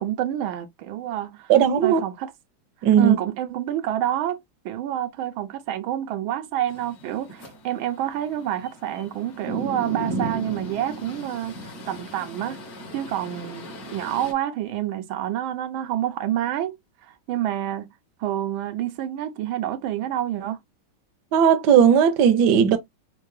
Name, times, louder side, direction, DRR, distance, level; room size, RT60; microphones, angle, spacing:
voice 1, 0.0-1.5 1.8-2.3 3.0-12.6 12.9-16.8 17.0-17.9 18.2-20.6, right 11 dB, 85° right, 1.4 m, -28 dB
voice 2, 1.5-2.0 2.8-3.2 21.3-22.8, right 8 dB, 65° right, 1.2 m, -17 dB
sound 1, 6.7-14.3, right 2 dB, 50° left, 1.5 m, -36 dB
4.4 x 2.2 x 3.1 m
omnidirectional pair, 2.2 m